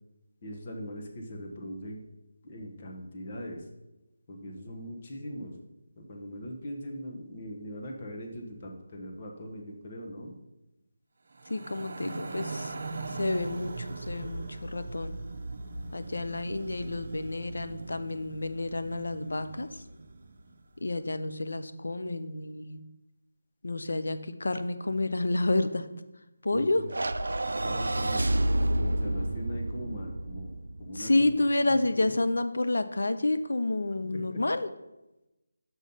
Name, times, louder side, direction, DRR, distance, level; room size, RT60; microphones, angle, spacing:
voice 1, 0.4-2.0 2.4-3.7 4.3-5.6 6.0-10.3 26.5-26.9 27.6-32.2 34.0-34.4, equal, 35° left, 1 dB, 1.3 m, -41 dB
sound 1, 11.3-20.6, right 3 dB, 55° right, 0.7 m, -40 dB
voice 2, 11.5-12.7 13.1-15.1 15.9-19.8 20.8-22.8 23.6-25.9 26.4-26.8 31.0-34.7, left 2 dB, 75° left, 10 dB, 0.6 m, -29 dB
sound 2, 26.9-31.3, right 1 dB, 80° right, 0.4 m, -29 dB
6.1 x 5.4 x 5.5 m, 0.97 s
figure-of-eight pair, 160°, 0 cm